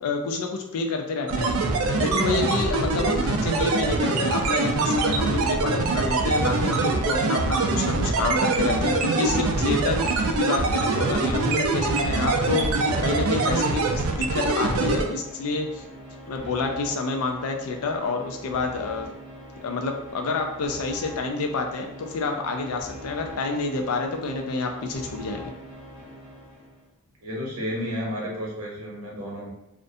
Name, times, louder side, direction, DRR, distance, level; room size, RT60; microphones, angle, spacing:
voice 1, 0.0-1.5 2.0-15.8 16.3-19.1 19.6-25.5, left 3 dB, 85° left, 4 dB, 0.4 m, -28 dB
sound 1, 1.3-15.0, right 3 dB, 70° right, 0.4 m, -24 dB
sound 2, 10.1-26.9, equal, 10° left, 1.1 m, -42 dB
voice 2, 27.2-29.5, equal, 90° right, -3 dB, 0.8 m, -32 dB
2.4 x 2.1 x 2.6 m, 0.83 s
head